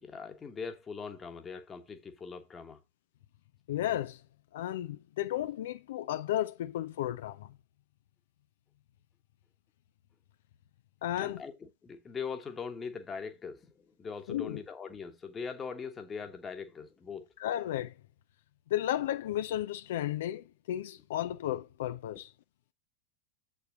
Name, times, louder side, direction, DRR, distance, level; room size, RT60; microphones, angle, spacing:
voice 1, 0.0-2.8 11.2-13.7 14.0-17.3, left 5 dB, 20° left, 1.3 m, -41 dB
voice 2, 3.7-4.2 4.5-7.6 11.0-11.4 14.3-14.6 17.4-17.9 18.7-22.3, left 12 dB, 55° left, 0.5 m, -33 dB
8.0 x 6.1 x 3.6 m
figure-of-eight pair, 90°, 0 cm